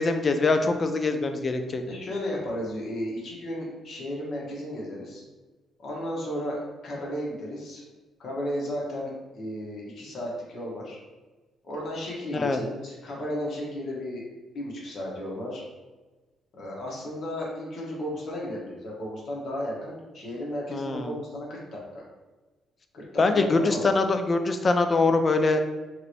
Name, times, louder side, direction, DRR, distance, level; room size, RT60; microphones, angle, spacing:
voice 1, 0.0-1.8 12.3-12.6 20.7-21.1 23.2-25.6, left 3 dB, 35° left, 7 dB, 0.3 m, -23 dB
voice 2, 1.9-5.2 5.8-7.8 8.2-11.0 11.6-14.3 14.5-15.6 16.5-22.0 22.9-23.9, equal, 60° left, -3 dB, 1.0 m, -34 dB
3.0 x 2.9 x 2.5 m, 1.2 s
cardioid pair, 90°, 0 cm